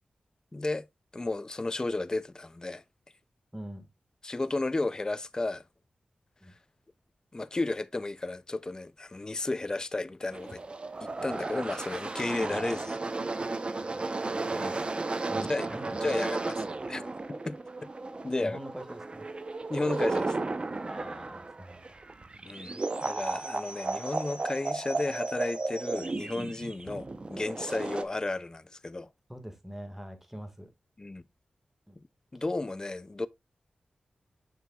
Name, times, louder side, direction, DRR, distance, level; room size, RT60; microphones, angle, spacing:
voice 1, 0.5-0.9 1.1-2.8 4.2-5.6 7.3-10.6 11.0-13.0 14.5-14.9 15.4-15.7 16.0-16.4 16.9-17.9 18.2-18.6 19.7-20.4 22.4-29.1 31.0-31.2 32.3-33.3, left 2 dB, 25° left, 0.4 m, -33 dB
voice 2, 3.5-3.9 6.4-6.5 12.3-12.8 13.7-14.0 15.3-16.5 18.4-19.3 20.9-22.0 29.3-30.7 31.9-32.0, equal, 10° right, 1.6 m, -44 dB
sound 1, 10.3-28.0, right 3 dB, 40° right, 0.7 m, -34 dB
6.8 x 6.3 x 2.2 m
cardioid pair, 65°, 3 cm